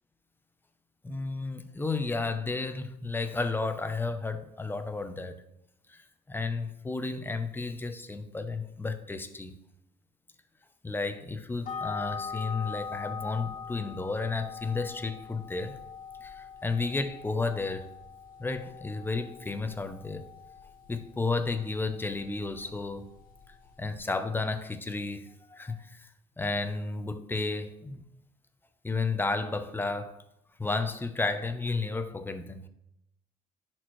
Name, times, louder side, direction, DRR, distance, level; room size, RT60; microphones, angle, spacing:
voice 1, 1.0-5.4 5.9-9.5 10.8-15.8 16.2-17.9 18.4-20.3 20.9-23.0 23.8-26.1 26.4-28.0 28.8-30.2 30.6-32.6, left 3 dB, 10° left, 0.7 m, -32 dB
sound 1, 11.6-24.0, left 6 dB, 50° left, 1.5 m, -43 dB
11.0 x 4.4 x 3.1 m
cardioid pair, 110°, 17 cm